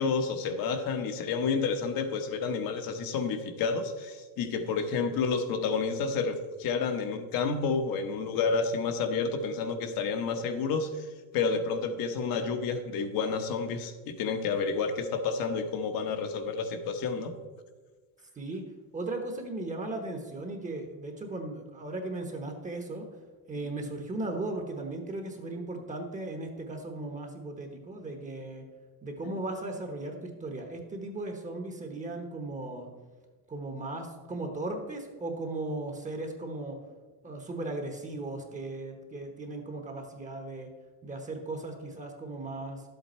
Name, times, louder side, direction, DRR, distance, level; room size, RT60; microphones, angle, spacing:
voice 1, 0.0-11.1 11.3-17.3, left 5 dB, 60° left, 6 dB, 1.2 m, -30 dB
voice 2, 18.9-23.1 23.5-28.6 29.0-32.9 33.5-36.8 37.2-40.7 41.0-42.8, right 2 dB, 20° right, 4 dB, 1.1 m, -37 dB
11.5 x 8.0 x 4.3 m, 1.3 s
cardioid pair, 150°, 40 cm